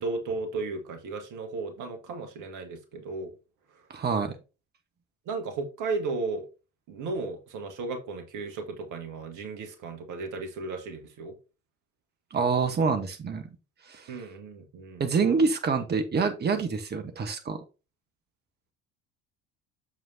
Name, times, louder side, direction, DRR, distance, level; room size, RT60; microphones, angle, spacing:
voice 1, 0.0-3.3 5.2-6.5 6.9-11.3 14.1-15.1, right 3 dB, 50° right, 1.7 m, -35 dB
voice 2, 3.9-4.3 12.3-13.4 13.9-14.1 15.0-17.6, right 5 dB, 25° right, 1.2 m, -26 dB
7.0 x 6.1 x 2.8 m
figure-of-eight pair, 60°, 39 cm